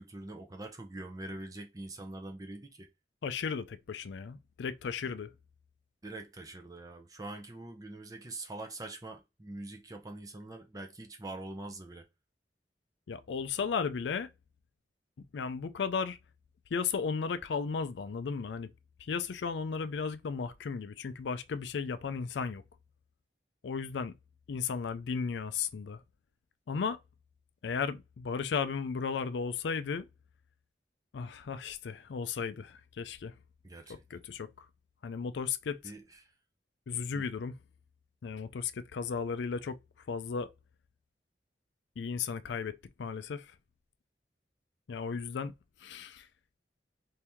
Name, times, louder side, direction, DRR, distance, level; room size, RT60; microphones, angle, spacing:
voice 1, 0.0-2.9 6.0-12.1 33.6-34.2 35.8-36.3 37.1-37.2, right 2 dB, 20° right, 0.6 m, -44 dB
voice 2, 3.2-5.3 13.1-14.3 15.2-16.2 16.7-18.7 19.0-22.6 23.6-24.1 24.5-26.0 26.7-27.0 27.6-30.1 31.1-33.3 34.1-34.7 35.0-35.8 36.9-37.5 38.2-39.8 40.1-40.5 42.0-43.5 44.9-45.5 45.8-46.3, left 5 dB, 80° left, 0.4 m, -35 dB
2.9 x 2.7 x 3.5 m
head